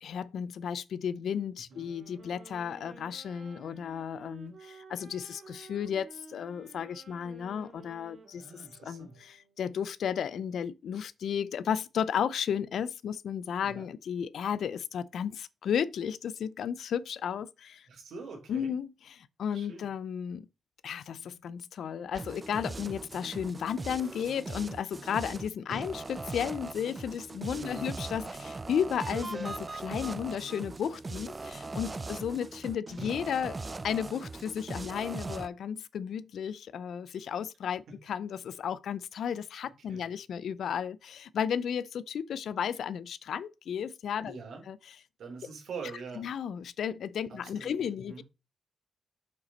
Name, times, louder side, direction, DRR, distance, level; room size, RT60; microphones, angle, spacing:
voice 1, 0.0-17.9 18.5-20.5 20.8-33.6 33.8-44.4 44.7-45.0 46.1-48.2, left 8 dB, 85° left, 0.5 m, -34 dB
sound 1, 1.7-9.7, right 4 dB, 60° right, 3.0 m, -53 dB
voice 2, 8.3-9.1 13.6-13.9 17.9-18.7 19.5-19.8 27.6-27.9 39.9-40.0 44.3-44.6 45.2-46.3 47.6-48.2, right 4 dB, 90° right, 3.3 m, -44 dB
sound 2, 22.1-35.5, right 3 dB, 35° right, 0.5 m, -40 dB
6.7 x 5.8 x 4.2 m
cardioid pair, 75°, 0 cm